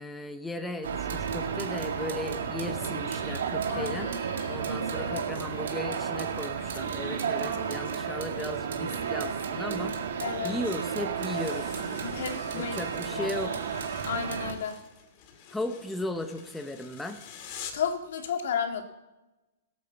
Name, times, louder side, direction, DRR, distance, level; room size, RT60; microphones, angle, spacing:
voice 1, 0.0-4.1 4.4-10.0 10.4-11.8 12.5-13.7 15.5-17.2, left 2 dB, 5° left, 6 dB, 0.8 m, -36 dB
sound 1, 0.8-14.5, right 6 dB, 80° right, 2.1 m, -32 dB
voice 2, 3.7-5.6 10.2-10.6 12.0-13.6 14.0-14.8 17.7-18.8, left 7 dB, 70° left, 5 dB, 2.2 m, -34 dB
sound 2, 11.2-17.9, left 8 dB, 35° left, 1.9 m, -47 dB
17.5 x 8.6 x 7.1 m, 1.0 s
hypercardioid pair, 165°, 0 cm